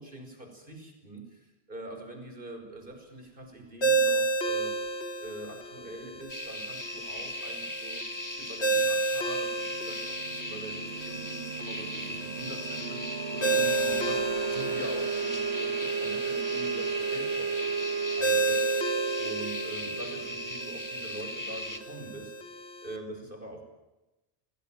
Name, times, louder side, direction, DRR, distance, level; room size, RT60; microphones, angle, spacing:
voice 1, 0.0-4.8 5.2-8.0 8.4-17.7 18.1-18.7 19.2-22.3 22.8-23.6, right 1 dB, 55° right, 4 dB, 5.7 m, -43 dB
Ringtone, 3.8-23.0, right 3 dB, 80° left, 2.8 m, -32 dB
sound 1, 6.3-21.8, left 1 dB, 15° left, 2.0 m, -38 dB
sound 2, 9.3-21.8, right 6 dB, 80° right, 1.7 m, -34 dB
28.5 x 19.0 x 9.2 m, 1.0 s
omnidirectional pair, 1.1 m